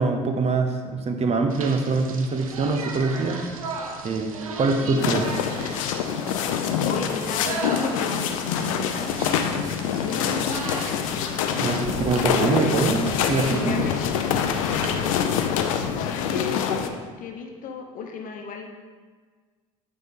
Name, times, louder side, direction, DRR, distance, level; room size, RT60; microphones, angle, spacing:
voice 1, 0.0-3.4 4.0-5.3 11.6-13.8, right 3 dB, 35° right, 5 dB, 0.8 m, -24 dB
sound 1, 1.5-15.0, right 4 dB, 85° right, 0.6 m, -37 dB
sound 2, 5.0-16.9, left 8 dB, 75° left, 0.5 m, -25 dB
voice 2, 6.8-9.5 10.0-11.1 12.4-12.8 13.5-18.7, left 4 dB, 50° left, 3 dB, 1.0 m, -35 dB
9.3 x 4.3 x 3.7 m, 1.5 s
figure-of-eight pair, 60°, 17 cm